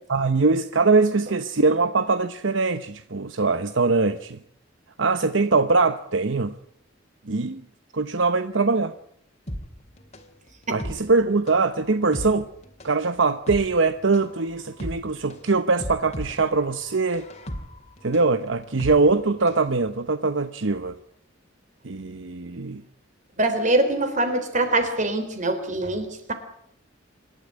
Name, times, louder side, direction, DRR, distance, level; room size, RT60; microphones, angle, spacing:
voice 1, 0.1-4.4 5.0-6.5 7.3-7.6 7.9-8.9 10.7-12.5 12.8-17.3 18.0-21.0 21.8-22.8, right 3 dB, 70° right, 0.9 m, -22 dB
sound 1, 9.5-19.7 20.0-20.1, equal, 35° left, 2.7 m, -37 dB
voice 2, 23.4-26.3, right 2 dB, 40° right, 3.8 m, -23 dB
26.0 x 12.5 x 9.6 m
head